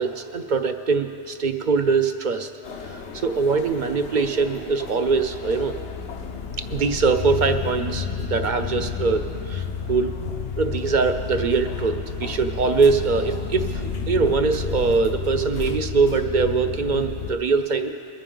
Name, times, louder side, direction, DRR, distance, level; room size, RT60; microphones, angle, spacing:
voice 1, 0.0-2.5 2.8-5.7 6.7-10.1 10.6-17.9, right 4 dB, 55° right, 7 dB, 0.6 m, -22 dB
sound 1, 2.6-17.3, left 6 dB, 90° left, 1.0 m, -31 dB
22.5 x 9.9 x 3.8 m, 2.6 s
omnidirectional pair, 1.1 m